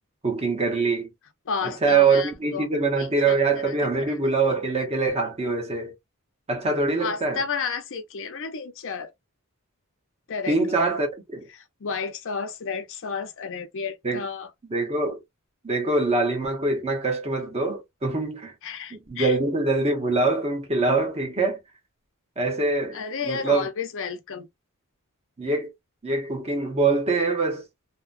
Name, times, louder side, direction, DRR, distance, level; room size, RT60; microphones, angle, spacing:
voice 1, 0.2-1.1 1.6-5.9 6.5-7.4 10.5-11.5 14.0-14.2 14.7-15.2 15.6-18.5 18.9-21.6 22.4-23.7 25.4-25.7 26.0-27.6, right 3 dB, 30° right, 0.8 m, -24 dB
voice 2, 1.5-2.7 3.0-4.2 7.0-9.1 10.3-10.6 11.5-14.5 18.6-19.4 22.9-24.5, left 5 dB, 60° left, 0.6 m, -32 dB
2.9 x 2.1 x 2.4 m
head